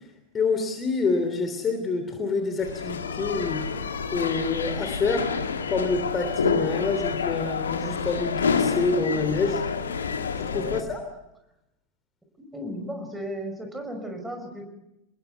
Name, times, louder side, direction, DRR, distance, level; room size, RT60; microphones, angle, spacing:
voice 1, 0.3-3.6 4.1-5.3 5.7-9.6 10.3-11.0, left 4 dB, 20° left, 6 dB, 3.1 m, -27 dB
sound 1, 2.6-10.8, left 5 dB, 70° left, 1.7 m, -28 dB
voice 2, 10.5-10.9 12.4-14.6, equal, 5° right, 5 dB, 5.5 m, -35 dB
27.0 x 20.5 x 8.1 m, 0.90 s
figure-of-eight pair, 90°, 0 cm